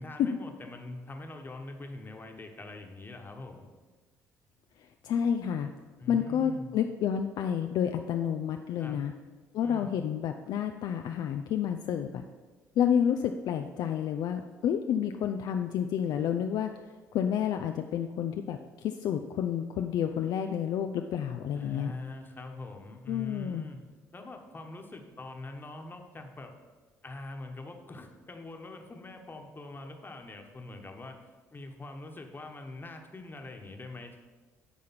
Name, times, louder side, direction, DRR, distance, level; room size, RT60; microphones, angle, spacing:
voice 1, 0.0-3.7 6.0-6.7 8.8-9.0 9.6-10.0 21.5-23.8 24.1-26.5 27.0-31.2 31.5-34.2, left 2 dB, 25° left, 3 dB, 1.3 m, -43 dB
voice 2, 5.0-5.7 6.1-9.1 9.5-12.2 12.8-16.7 17.1-18.6 18.8-21.9 23.1-23.6, left 8 dB, 60° left, 5 dB, 0.4 m, -29 dB
9.8 x 3.6 x 5.9 m, 1.3 s
hypercardioid pair, 55°, 8 cm